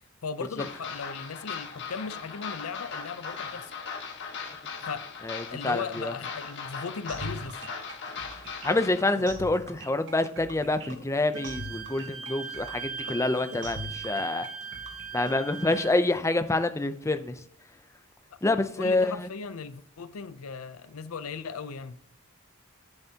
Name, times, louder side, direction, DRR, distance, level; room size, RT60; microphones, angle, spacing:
voice 1, 0.2-3.7 4.8-5.0 5.5-7.6 18.3-18.4 18.8-22.0, left 5 dB, 80° left, 0.6 m, -37 dB
sound 1, 0.6-9.0, left 5 dB, 55° left, 1.5 m, -39 dB
voice 2, 5.2-6.1 8.6-14.5 15.1-17.4 18.4-19.3, left 2 dB, 15° left, 0.6 m, -27 dB
sound 2, 7.1-15.8, right 1 dB, 60° right, 1.2 m, -41 dB
Wind instrument woodwind instrument, 11.3-16.0, right 6 dB, 75° right, 1.5 m, -39 dB
10.5 x 7.9 x 2.9 m
head